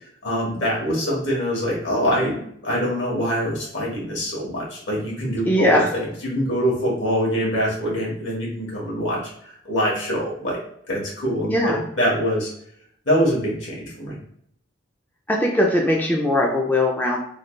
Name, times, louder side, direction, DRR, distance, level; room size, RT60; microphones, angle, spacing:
voice 1, 0.2-10.6 10.9-12.5 13.0-14.1, equal, 75° left, -4 dB, 1.4 m, -24 dB
voice 2, 5.4-6.0 11.5-11.9 15.3-17.2, left 1 dB, 10° left, -1 dB, 0.3 m, -20 dB
3.1 x 2.3 x 3.1 m, 0.69 s
head